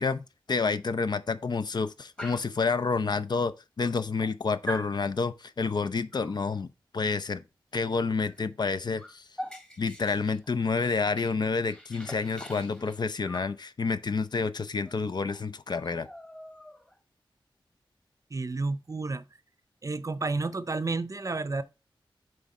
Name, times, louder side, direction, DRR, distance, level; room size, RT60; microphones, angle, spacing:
voice 1, 0.0-7.4 7.7-9.2 9.8-16.1, left 4 dB, 55° left, 0.5 m, -29 dB
Dog, 2.2-2.6 3.4-3.5 3.8-4.3 4.7-5.0 6.1-6.4 8.2-8.4 8.7-11.4 11.7-13.6 14.8-15.0 15.3-15.4 15.7-17.0, equal, 10° left, 1.2 m, -43 dB
voice 2, 18.3-19.2 19.8-21.6, right 3 dB, 40° right, 0.6 m, -31 dB
7.8 x 3.5 x 4.1 m
wide cardioid pair, 85°, 9 cm